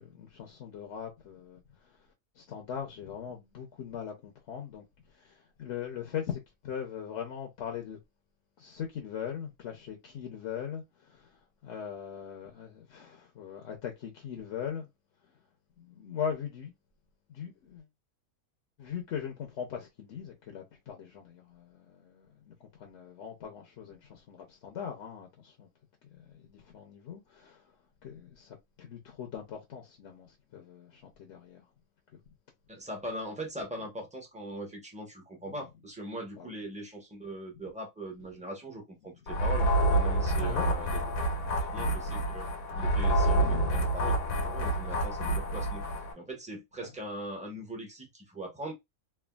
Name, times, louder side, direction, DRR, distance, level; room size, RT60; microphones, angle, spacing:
voice 1, 0.0-2.0 2.4-8.0 8.6-14.9 15.8-16.7 17.3-17.9 18.8-25.7 26.2-27.7 28.0-31.7 36.4-36.5 40.4-40.7 41.4-41.7 42.2-42.4 43.4-43.8 46.8-46.9, left 8 dB, 60° left, 0.8 m, -40 dB
voice 2, 32.7-41.0 41.7-42.5 42.7-43.4 43.7-45.8 46.1-48.7, right 1 dB, 10° right, 0.4 m, -40 dB
sound 1, 39.3-46.1, right 1 dB, 85° left, 1.4 m, -28 dB
3.4 x 2.2 x 2.2 m
omnidirectional pair, 1.7 m